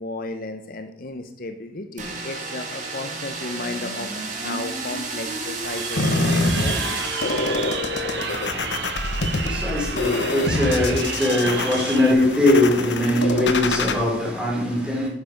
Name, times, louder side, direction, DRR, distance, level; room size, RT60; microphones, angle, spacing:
voice 1, 0.0-7.0, left 2 dB, 55° left, 0.8 m, -34 dB
sound 1, 2.0-8.9, right 2 dB, 45° right, 2.2 m, -32 dB
Crowd, 5.6-12.1, right 5 dB, 70° right, 1.5 m, -31 dB
sound 2, 6.0-13.9, left 2 dB, 80° left, 1.0 m, -26 dB
voice 2, 9.0-15.1, left 1 dB, 5° right, 3.5 m, -21 dB
11.0 x 7.2 x 5.2 m
head